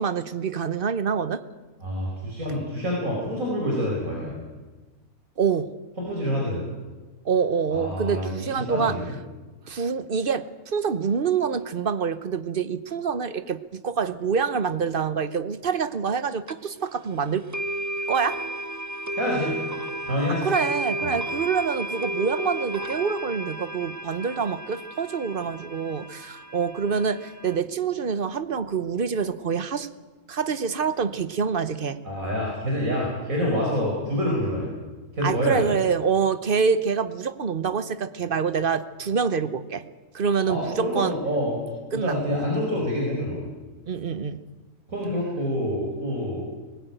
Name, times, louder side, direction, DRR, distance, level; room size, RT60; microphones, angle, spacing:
voice 1, 0.0-1.4 5.4-5.7 7.2-9.0 9.7-17.4 18.1-18.4 20.4-29.9 30.3-32.0 35.2-39.8 40.1-41.2 41.9-42.4 43.9-44.4, right 6 dB, 45° right, 13 dB, 1.0 m, -26 dB
voice 2, 1.8-4.3 6.0-6.6 7.7-8.3 8.7-9.2 19.2-19.6 20.0-20.5 21.0-21.1 32.0-34.7 35.1-35.7 40.5-41.6 41.9-43.5 44.9-46.4, equal, 75° right, -2 dB, 5.4 m, -27 dB
sound 1, 16.5-16.6 17.5-27.6, right 1 dB, 20° right, 0.6 m, -33 dB
20.5 x 20.0 x 9.2 m, 1.3 s
omnidirectional pair, 1.4 m